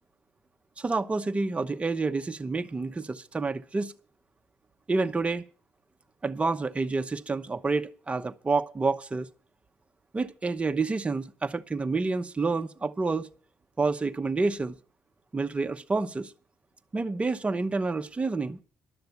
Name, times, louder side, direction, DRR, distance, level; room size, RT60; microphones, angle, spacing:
voice 1, 0.8-3.9 4.9-5.4 6.2-9.3 10.1-13.3 13.8-14.7 15.3-16.3 16.9-18.6, right 3 dB, 25° right, 1.0 m, -28 dB
12.0 x 6.8 x 9.3 m
supercardioid pair, 65°, 5 cm